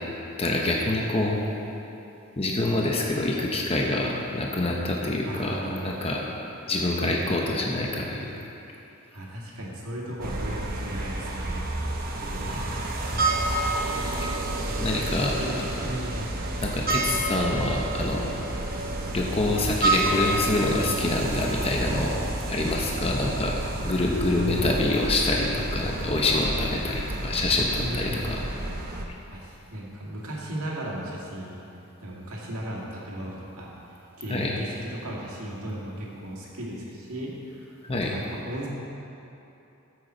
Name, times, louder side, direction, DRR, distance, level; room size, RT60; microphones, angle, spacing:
voice 1, 0.4-1.4 2.4-6.2 6.7-8.3 12.2-12.6 14.2-14.3 14.8-15.7 16.6-18.3 19.1-23.5 23.8-28.4 34.3-34.5 37.8-38.1, left 2 dB, 25° left, -1 dB, 0.9 m, -26 dB
voice 2, 5.2-6.1 7.1-7.7 9.1-11.6 13.1-13.7 14.7-16.4 16.8-17.2 24.3-24.9 27.8-28.5 29.3-31.6 32.0-38.7, equal, 70° right, -4 dB, 2.2 m, -36 dB
sound 1, 10.2-29.0, right 2 dB, 40° right, 0.9 m, -30 dB
13.5 x 8.0 x 4.5 m, 3.0 s
head